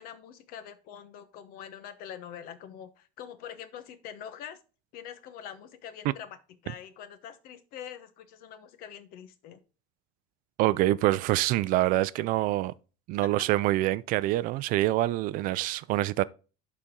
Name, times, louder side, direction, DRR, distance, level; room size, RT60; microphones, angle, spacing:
voice 1, 0.0-4.6 4.9-6.4 6.6-9.6 12.4-12.5, left 9 dB, 55° left, 1.0 m, -44 dB
voice 2, 10.6-12.7 13.1-16.2, right 16 dB, 50° right, 0.4 m, -25 dB
11.5 x 4.2 x 3.7 m
cardioid pair, 175°, 18 cm